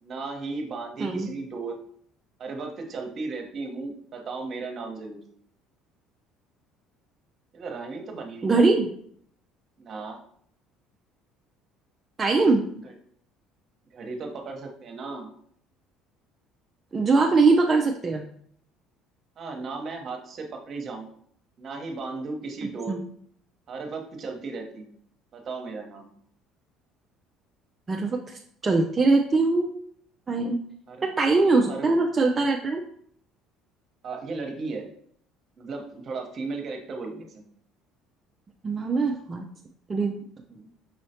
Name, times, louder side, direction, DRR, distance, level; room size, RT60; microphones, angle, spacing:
voice 1, 0.0-1.8 2.4-5.2 7.5-8.6 9.8-10.2 12.7-12.9 13.9-15.3 19.4-21.1 21.6-23.0 23.7-24.9 25.3-26.1 30.9-31.0 31.5-31.9 34.0-34.9 35.6-37.5, right 3 dB, 50° right, 3 dB, 1.0 m, -35 dB
voice 2, 8.4-8.9 12.2-12.6 16.9-18.2 22.9-23.0 27.9-29.7 30.3-30.6 31.0-32.8 38.6-39.5 39.9-40.1 40.6-40.7, right 3 dB, 30° right, 1 dB, 0.5 m, -22 dB
5.6 x 3.1 x 2.8 m, 0.63 s
supercardioid pair, 80°, 0 cm